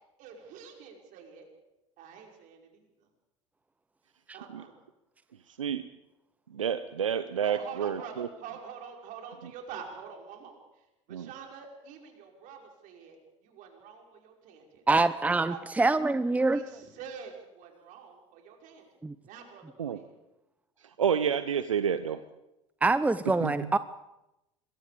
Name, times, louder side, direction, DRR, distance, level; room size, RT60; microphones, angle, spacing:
voice 1, 0.2-1.5 2.0-3.1 4.3-4.8 7.4-16.0 16.5-18.9 19.2-20.1, right 7 dB, 55° right, 2 dB, 5.6 m, -46 dB
voice 2, 6.5-8.3 11.1-11.3 19.8-20.0 21.0-22.2 23.4-23.7, right 8 dB, 85° right, 12 dB, 0.8 m, -29 dB
voice 3, 14.9-16.7 19.0-19.1 22.8-23.8, right 3 dB, 10° right, 15 dB, 0.7 m, -25 dB
26.5 x 22.5 x 5.1 m, 0.93 s
hypercardioid pair, 75°, 16 cm